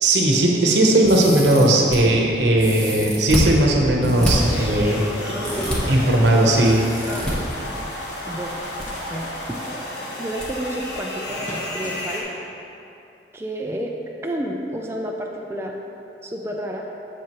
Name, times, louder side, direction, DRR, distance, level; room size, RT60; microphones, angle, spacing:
voice 1, 0.0-5.1 5.9-6.8, right 1 dB, 75° right, 0 dB, 0.9 m, -17 dB
sound 1, 1.0-2.0 2.6-3.5 4.0-4.3 5.4-5.8 6.6-7.3 8.4-8.9 9.1-9.2 10.4-10.5 10.9-11.0, equal, 5° left, 1.1 m, -27 dB
sound 2, 4.3-12.2, left 1 dB, 70° left, 1.1 m, -33 dB
sound 3, 4.7-12.1, left 1 dB, 45° left, 1.2 m, -38 dB
voice 2, 5.3-6.4 7.0-7.5 8.3-8.5 9.1-9.6 10.2-12.2 13.3-13.9 14.2-15.8 16.2-16.8, right 1 dB, 15° right, 0 dB, 0.4 m, -31 dB
7.5 x 7.0 x 3.0 m, 2.9 s
head